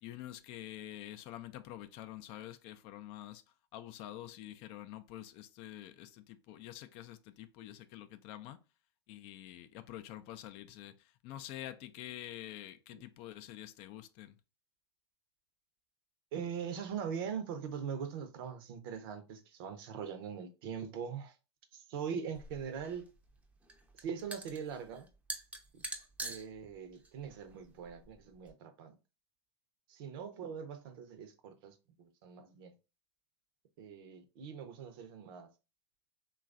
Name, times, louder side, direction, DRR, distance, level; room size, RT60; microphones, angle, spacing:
voice 1, 0.0-3.4 3.7-8.6 9.1-14.4, left 13 dB, 45° left, 0.4 m, -47 dB
voice 2, 16.3-21.4 21.7-23.1 24.0-25.1 25.7-25.8 26.2-29.0 29.9-32.7 33.8-35.5, right 7 dB, 60° right, 0.7 m, -42 dB
sound 1, 22.3-28.5, right 2 dB, 10° right, 0.5 m, -46 dB
3.1 x 2.3 x 2.4 m
hypercardioid pair, 100°, 13 cm